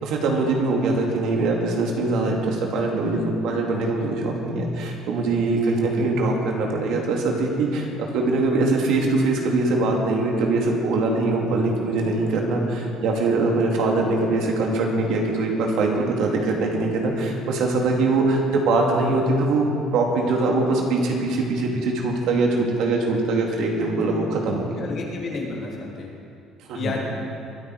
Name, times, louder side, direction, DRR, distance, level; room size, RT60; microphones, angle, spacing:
voice 1, 0.0-7.9 8.1-19.6 19.9-24.8 26.7-26.9, right 3 dB, 70° right, 0 dB, 2.5 m, -22 dB
voice 2, 24.8-26.1 26.7-27.0, left 4 dB, 50° left, -2 dB, 3.1 m, -31 dB
22.0 x 9.5 x 4.9 m, 2.5 s
cardioid pair, 110°, 0 cm